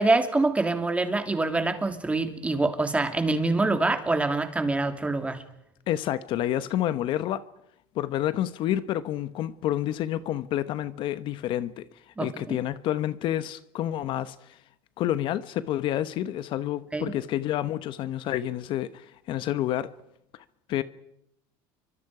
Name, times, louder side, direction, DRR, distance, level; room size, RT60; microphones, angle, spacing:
voice 1, 0.0-5.4 12.2-12.6 16.9-17.1, right 2 dB, 15° right, 2.9 m, -25 dB
voice 2, 5.9-7.4 7.9-14.6 15.0-19.9 20.7-20.8, left 12 dB, 55° left, 1.0 m, -29 dB
29.0 x 24.5 x 4.9 m
supercardioid pair, 110°, 10 cm